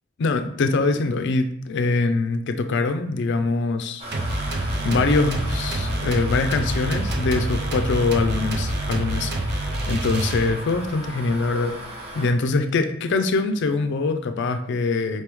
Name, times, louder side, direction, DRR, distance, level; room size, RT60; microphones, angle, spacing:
voice 1, 0.2-4.0 4.4-11.7 12.1-15.2, left 3 dB, 60° left, 8 dB, 0.4 m, -23 dB
sound 1, 4.0-12.3, right 1 dB, 30° right, 0.8 m, -37 dB
sound 2, 4.1-10.8, right 1 dB, 55° right, 0.5 m, -27 dB
4.4 x 3.4 x 3.0 m, 0.71 s
head